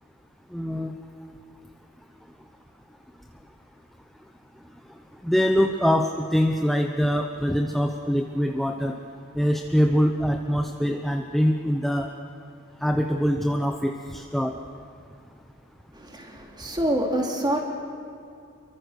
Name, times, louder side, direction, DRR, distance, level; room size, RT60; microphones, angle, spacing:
voice 1, 0.5-0.9 5.2-9.0 9.3-12.1 12.8-14.5, equal, ahead, 3 dB, 0.8 m, -23 dB
voice 2, 15.9-17.6, right 1 dB, 20° right, 0 dB, 3.2 m, -26 dB
28.0 x 23.5 x 6.6 m, 2.5 s
head